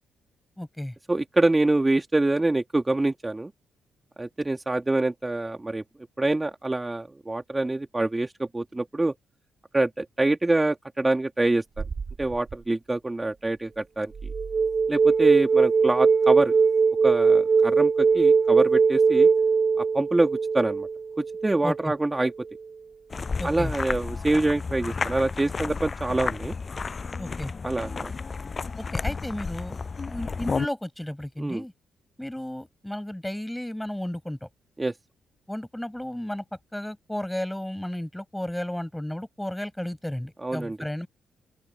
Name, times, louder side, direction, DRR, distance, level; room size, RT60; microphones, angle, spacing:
voice 1, 0.6-0.9 21.6-21.9 23.4-23.7 27.2-27.5 28.8-31.7 32.2-34.5 35.5-36.4 36.7-41.1, left 1 dB, 5° left, 6.6 m, -33 dB
voice 2, 1.1-3.5 4.2-5.8 6.2-9.1 9.7-11.8 12.2-14.1 14.9-16.5 17.0-19.3 19.8-20.9 21.2-22.3 23.4-26.5 27.6-28.1 31.4-31.6 34.8-34.9 40.4-40.8, right 2 dB, 20° right, 2.4 m, -25 dB
sound 1, 11.8-12.5 14.2-21.9, right 5 dB, 45° right, 2.3 m, -21 dB
sound 2, 23.1-30.7, left 4 dB, 40° left, 7.8 m, -32 dB
open air
supercardioid pair, 50°, 0 cm